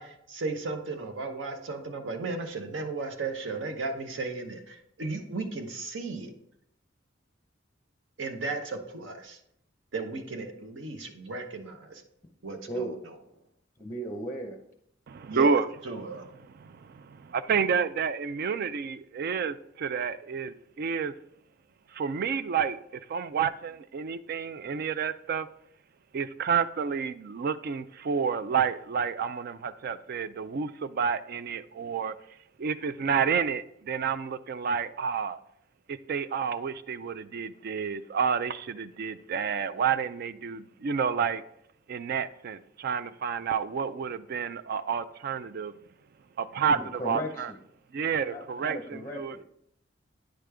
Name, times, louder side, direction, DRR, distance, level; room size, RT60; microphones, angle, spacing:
voice 1, 0.0-6.3 8.2-9.4 9.9-12.0 12.4-12.9 15.3-15.5 15.8-16.3, right 3 dB, 70° right, 0.9 m, -35 dB
voice 2, 12.7-13.0 13.8-14.6 46.7-47.6 48.3-49.4, right 1 dB, 15° left, 0.7 m, -36 dB
voice 3, 15.1-15.7 16.0-16.1 16.5-21.1 21.9-22.8 23.1-25.5 26.1-32.2 32.6-35.4 35.9-41.4 41.9-45.7 46.4-47.5 47.9-49.4, right 6 dB, 55° right, 0.4 m, -30 dB
9.1 x 5.1 x 3.4 m
head